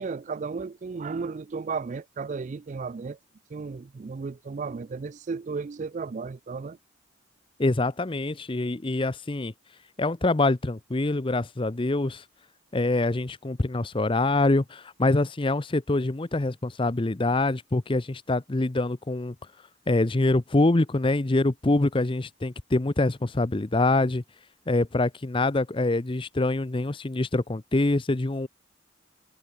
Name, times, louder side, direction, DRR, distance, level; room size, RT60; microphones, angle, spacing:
voice 1, 0.0-3.2 3.5-6.8, right 4 dB, 40° right, 0.4 m, -34 dB
voice 2, 7.6-9.5 10.0-12.2 12.7-19.3 19.9-24.2 24.7-28.5, left 2 dB, 25° left, 0.7 m, -25 dB
head